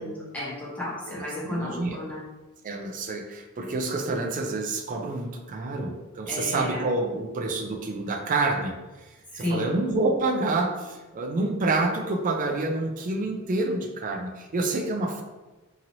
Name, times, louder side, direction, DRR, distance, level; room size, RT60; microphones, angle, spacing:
voice 1, 0.0-2.2 6.3-6.8 9.4-9.7, left 1 dB, 5° left, -8 dB, 0.8 m, -32 dB
voice 2, 1.1-2.0 2.6-15.2, right 2 dB, 35° right, 3 dB, 0.4 m, -28 dB
2.9 x 2.8 x 2.6 m, 1.2 s
head